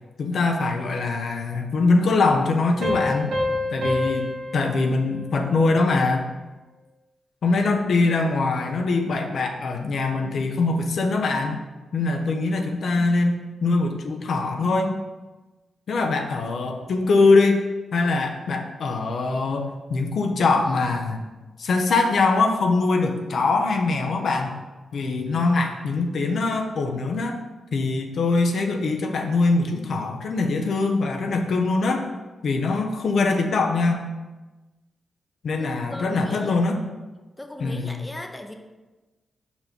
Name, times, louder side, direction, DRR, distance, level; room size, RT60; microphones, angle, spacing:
voice 1, 0.2-3.3 3.7-6.3 7.4-11.6 11.9-15.0 15.9-17.6 17.9-21.2 21.6-24.6 24.9-27.4 27.7-32.1 32.4-34.1 35.4-36.8 37.6-38.1, left 3 dB, 70° left, 3 dB, 0.6 m, -22 dB
Piano, 2.8-6.1, left 2 dB, 90° right, 1.4 m, -28 dB
voice 2, 12.8-13.2 35.6-36.7 37.4-38.5, left 1 dB, 15° left, 4 dB, 0.7 m, -39 dB
5.3 x 4.3 x 4.4 m, 1.2 s
cardioid pair, 70°, 0 cm